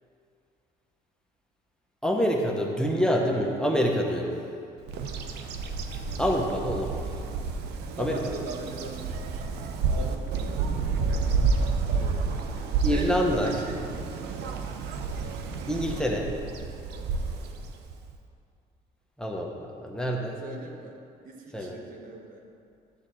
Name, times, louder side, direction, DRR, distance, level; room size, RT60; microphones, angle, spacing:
voice 1, 2.0-4.4 6.2-7.1 8.0-8.3 12.8-13.5 15.7-16.3 19.2-20.4 21.5-21.8, equal, 5° left, 0 dB, 0.9 m, -26 dB
Bird vocalization bird call bird song, 4.9-18.1, right 4 dB, 80° right, 0.8 m, -30 dB
voice 2, 7.8-10.6 11.1-13.9 14.3-14.8 16.9-17.6 20.4-22.5, right 3 dB, 55° right, 1 dB, 1.3 m, -41 dB
11.5 x 4.0 x 7.5 m, 2.5 s
cardioid pair, 110°, 17 cm